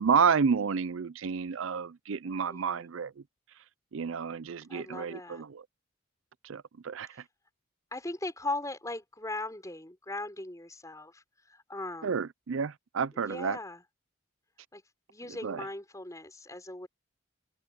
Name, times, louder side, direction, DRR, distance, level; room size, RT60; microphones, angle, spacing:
voice 1, 0.0-3.1 3.9-5.6 6.4-7.1 12.0-13.6 15.4-15.6, right 6 dB, 70° right, 0.5 m, -30 dB
voice 2, 2.5-2.9 4.7-5.4 7.9-12.2 13.1-13.8 14.7-14.8 15.1-16.9, left 2 dB, 15° left, 5.1 m, -39 dB
head